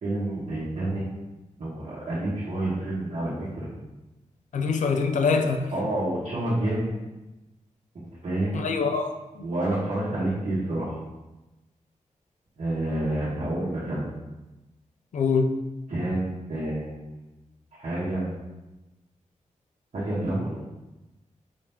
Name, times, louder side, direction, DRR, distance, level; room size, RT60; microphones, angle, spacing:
voice 1, 0.0-1.0 1.6-3.7 4.9-5.0 5.7-6.9 7.9-8.6 9.4-11.0 12.6-14.1 15.9-17.0 17.8-18.3 19.9-20.6, right 1 dB, 65° right, -9 dB, 1.2 m, -29 dB
voice 2, 4.5-5.6 8.5-9.4 15.1-15.5, left 5 dB, 75° left, 5 dB, 0.5 m, -24 dB
4.9 x 2.9 x 3.5 m, 1.0 s
wide cardioid pair, 130°, 13 cm